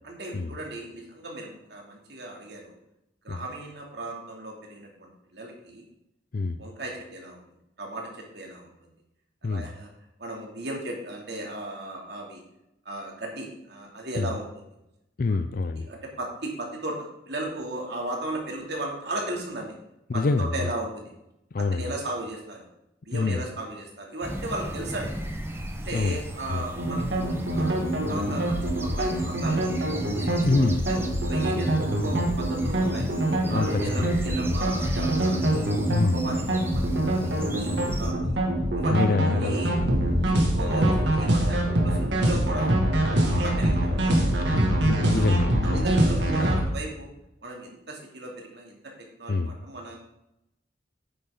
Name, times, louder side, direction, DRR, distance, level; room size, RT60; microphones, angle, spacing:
voice 1, 0.0-2.7 3.2-5.8 6.6-7.4 7.8-8.7 9.4-9.9 10.2-12.4 12.8-14.6 15.3-15.4 15.8-19.7 20.1-21.1 21.7-22.7 23.1-25.1 25.9-27.7 28.1-29.6 30.1-30.4 30.9-33.1 33.5-35.7 36.0-38.4 38.8-39.8 40.2-42.8 43.2-44.5 45.6-47.1 47.4-48.8 49.2-49.9, right 1 dB, 65° right, 0 dB, 2.7 m, -36 dB
voice 2, 15.2-15.9 20.1-20.7 21.5-21.9 23.1-23.4 25.9-26.2 26.5-26.7 30.4-30.9 33.5-34.2 35.9-36.2 38.9-40.3 43.3-43.4 44.5-45.9 49.3-49.5, left 3 dB, 55° left, 10 dB, 0.5 m, -26 dB
sound 1, 24.2-38.1, right 1 dB, 15° right, 1.1 m, -39 dB
sound 2, 26.8-46.6, right 1 dB, 85° right, 2.1 m, -24 dB
9.3 x 8.1 x 3.8 m, 0.86 s
head